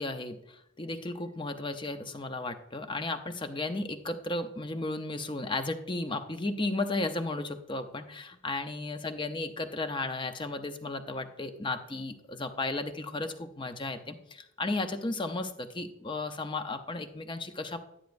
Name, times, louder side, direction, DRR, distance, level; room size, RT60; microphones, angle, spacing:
voice 1, 0.0-17.8, left 2 dB, 25° left, 7 dB, 0.6 m, -34 dB
10.5 x 10.0 x 2.6 m, 0.81 s
head